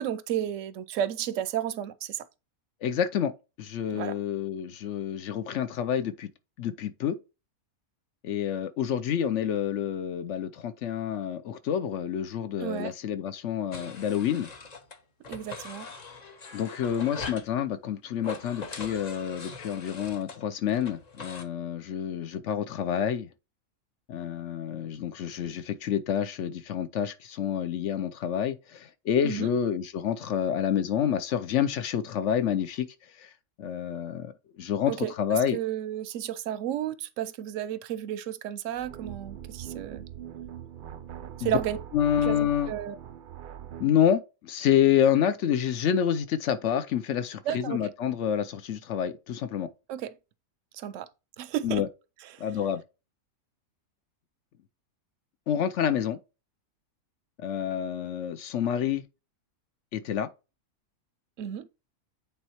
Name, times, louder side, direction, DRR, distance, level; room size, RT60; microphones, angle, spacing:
voice 1, 0.0-2.2 3.9-4.2 12.6-12.9 15.3-15.9 29.2-29.5 34.9-40.0 41.4-41.8 42.2-42.4 42.7-43.0 47.5-47.8 49.9-50.1 50.7-51.1 51.4-51.8 52.2-52.4 61.4-61.7, right 10 dB, 65° right, 0.9 m, -32 dB
voice 2, 2.8-3.3 3.6-6.3 6.6-7.2 8.2-14.5 16.5-23.3 24.1-32.9 33.2-33.3 33.6-35.6 41.4-41.6 41.9-42.7 43.8-49.7 51.6-51.9 52.4-52.8 55.5-56.2 57.4-59.0 59.9-60.3, left 9 dB, 60° left, 0.9 m, -28 dB
sound 1, 13.7-15.0 15.2-17.5 18.2-21.4, left 3 dB, 35° left, 0.7 m, -42 dB
sound 2, 38.7-44.0, right 10 dB, 80° right, 0.4 m, -42 dB
8.9 x 4.2 x 2.9 m
omnidirectional pair, 1.5 m